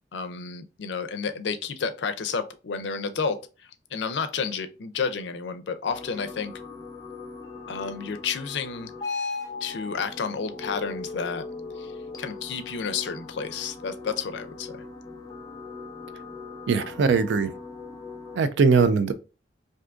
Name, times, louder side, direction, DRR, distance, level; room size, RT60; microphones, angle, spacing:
voice 1, 0.1-6.5 7.7-8.9 9.6-11.4 11.8-14.7, left 5 dB, 85° left, 0.4 m, -31 dB
sound 1, 5.9-18.4, left 4 dB, 20° left, 0.4 m, -39 dB
voice 2, 16.7-17.5 18.3-19.1, right 5 dB, 90° right, 0.4 m, -20 dB
2.6 x 2.5 x 3.4 m
head